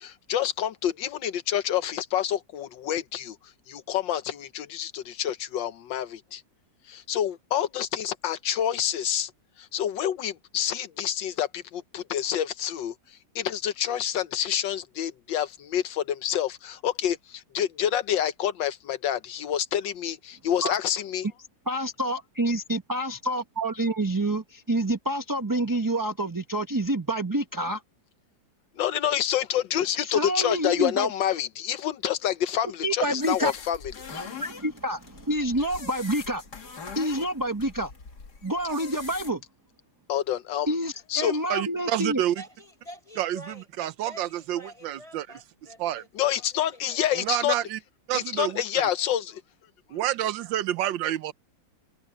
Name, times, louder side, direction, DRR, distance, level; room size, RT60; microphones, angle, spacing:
voice 1, 0.0-3.4 3.7-6.4 6.9-9.3 9.6-12.9 13.3-21.3 28.8-33.8 34.1-34.3 40.1-40.7 41.1-41.4 46.1-47.5 48.1-49.4, left 10 dB, 80° left, 1.5 m, -28 dB
voice 2, 21.7-27.8 30.0-31.1 32.8-33.5 34.1-36.4 36.9-37.9 38.4-39.4 40.7-42.2, right 1 dB, 15° right, 0.8 m, -28 dB
sound 1, 33.2-39.3, left 5 dB, 60° left, 2.8 m, -43 dB
voice 3, 41.5-42.3 43.2-45.3 45.8-46.0 47.2-47.8 48.1-48.6 49.9-51.3, right 12 dB, 85° right, 1.4 m, -28 dB
voice 4, 42.4-43.6 44.0-47.2, equal, 20° left, 6.4 m, -48 dB
omnidirectional pair, 2.0 m